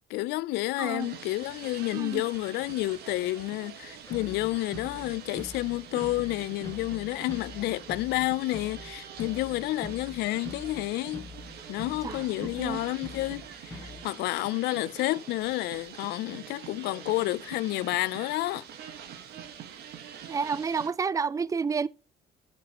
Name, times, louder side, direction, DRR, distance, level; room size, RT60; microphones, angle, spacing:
voice 1, 0.1-11.2 11.7-18.6, left 18 dB, 80° left, 0.4 m, -30 dB
voice 2, 0.8-1.1 1.9-2.2 12.0-12.8 20.3-21.9, right 5 dB, 20° right, 0.4 m, -30 dB
sound 1, 1.0-20.9, right 8 dB, 70° right, 1.4 m, -45 dB
sound 2, 4.0-14.1, left 2 dB, 20° left, 1.8 m, -45 dB
13.0 x 5.5 x 2.9 m
cardioid pair, 110°, 17 cm